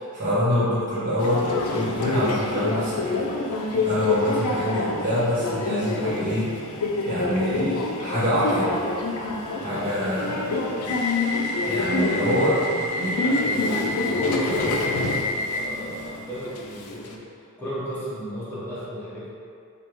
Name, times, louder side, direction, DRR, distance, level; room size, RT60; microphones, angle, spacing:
voice 1, 0.0-3.3 3.8-6.5 7.0-8.7 9.6-10.3 11.6-12.5, equal, 35° right, -10 dB, 1.1 m, -25 dB
Subway metro underground, 1.2-17.2, left 2 dB, 85° left, 0.5 m, -27 dB
voice 2, 9.5-11.0 11.7-14.0 14.2-17.2 17.6-19.3, equal, 10° left, -12 dB, 0.9 m, -34 dB
3.3 x 2.5 x 4.5 m, 2.4 s
head